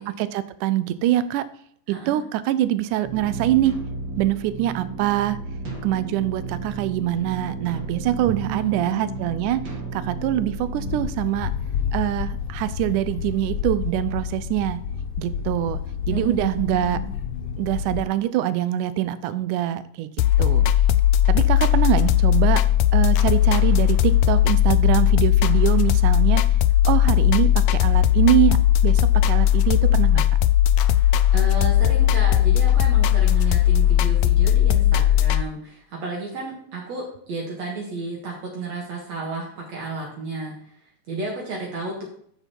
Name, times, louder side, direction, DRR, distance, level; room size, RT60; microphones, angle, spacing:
voice 1, 0.0-1.5 1.9-3.8 4.2-5.4 5.8-9.6 9.9-11.5 11.9-14.8 15.2-17.0 17.6-20.1 20.4-20.7 21.3-22.7 22.9-26.4 26.9-28.6 28.8-30.3, right 13 dB, 80° right, 15 dB, 2.1 m, -24 dB
voice 2, 1.9-2.2 8.5-9.2 16.1-17.1 31.3-40.7 41.1-42.0, right 3 dB, 60° right, -2 dB, 2.7 m, -32 dB
sound 1, 3.0-11.1, right 3 dB, 40° right, 2.0 m, -33 dB
sound 2, 10.9-18.0, left 7 dB, 65° left, 1.7 m, -30 dB
sound 3, 20.2-35.4, left 11 dB, 85° left, 1.6 m, -18 dB
8.4 x 6.7 x 4.4 m, 0.65 s
omnidirectional pair, 3.6 m